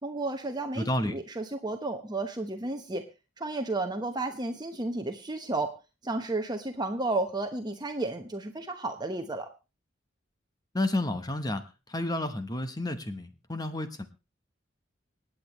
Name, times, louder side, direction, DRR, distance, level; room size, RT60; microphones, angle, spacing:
voice 1, 0.0-3.0 3.4-5.8 6.0-9.5, right 2 dB, 20° right, 6 dB, 1.0 m, -32 dB
voice 2, 0.8-1.2 10.7-11.6 11.9-14.0, left 1 dB, 20° left, 9 dB, 1.0 m, -30 dB
26.0 x 8.9 x 3.1 m, 0.29 s
head